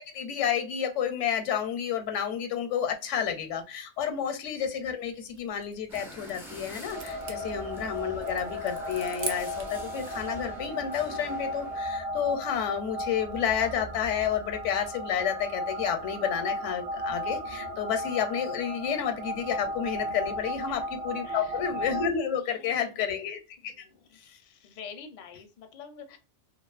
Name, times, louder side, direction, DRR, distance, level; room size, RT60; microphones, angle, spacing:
voice 1, 0.0-23.7 24.1-24.4, left 8 dB, 85° left, 7 dB, 0.9 m, -30 dB
sound 1, 5.2-9.8, right 5 dB, 70° right, 0.8 m, -43 dB
sound 2, 5.9-11.8, equal, 5° right, 0.3 m, -46 dB
sound 3, 6.9-22.1, equal, 40° right, 0.6 m, -35 dB
voice 2, 21.2-21.6 22.4-23.1 23.6-24.1 24.6-26.2, left 6 dB, 60° left, 6 dB, 0.5 m, -47 dB
2.4 x 2.3 x 2.3 m, 0.31 s
omnidirectional pair, 1.2 m